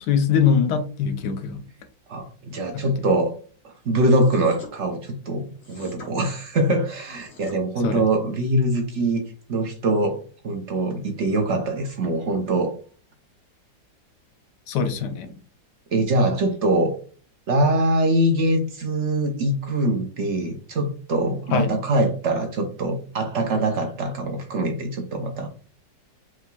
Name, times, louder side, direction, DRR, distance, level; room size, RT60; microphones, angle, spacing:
voice 1, 0.0-1.6 2.7-2.8 7.8-8.0 14.7-15.3 21.5-21.7, left 7 dB, 70° left, 1.2 m, -22 dB
voice 2, 2.1-3.4 3.9-9.2 9.5-10.2 10.4-12.7 15.9-17.0 17.5-25.5, right 1 dB, 70° right, 0.6 m, -23 dB
sound 1, 4.2-4.7 5.6-6.1 7.0-7.6, left 3 dB, 40° left, 1.4 m, -44 dB
4.7 x 3.5 x 2.3 m
omnidirectional pair, 2.0 m